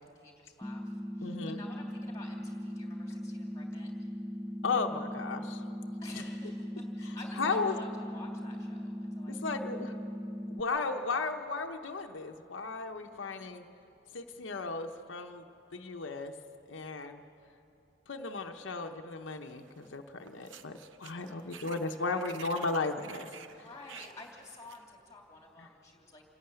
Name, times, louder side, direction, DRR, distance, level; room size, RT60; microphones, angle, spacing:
voice 1, 0.0-4.1 6.0-9.8 12.9-13.4 21.0-21.6 22.1-22.4 23.5-26.2, left 2 dB, 15° left, 0 dB, 2.9 m, -51 dB
sound 1, 0.6-10.6, equal, ahead, 0.4 m, -39 dB
voice 2, 1.2-1.6 4.6-5.6 7.4-7.7 9.3-9.9 10.5-13.6 14.1-15.4 15.7-16.3 16.7-17.2 18.1-23.3, left 4 dB, 85° left, 5 dB, 0.8 m, -35 dB
sound 2, 19.5-19.9 20.2-24.8, right 6 dB, 85° right, 0.8 m, -50 dB
27.5 x 11.5 x 9.0 m, 2.8 s
head